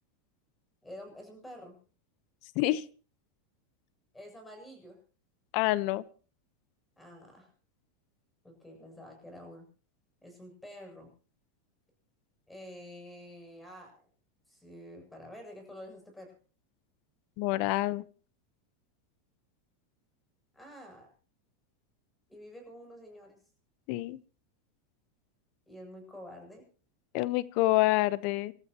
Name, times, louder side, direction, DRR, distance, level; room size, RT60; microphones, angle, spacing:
voice 1, 0.8-1.8 4.1-5.0 7.0-7.5 8.4-9.7 10.2-11.1 12.5-14.1 14.5-16.3 20.5-21.1 22.3-23.4 25.7-26.6, equal, 5° left, 3 dB, 7.6 m, -48 dB
voice 2, 5.5-6.0 17.4-18.0 23.9-24.2 27.1-28.5, left 17 dB, 55° left, 18 dB, 0.9 m, -27 dB
28.0 x 14.0 x 3.0 m, 0.38 s
supercardioid pair, 130°, 0 cm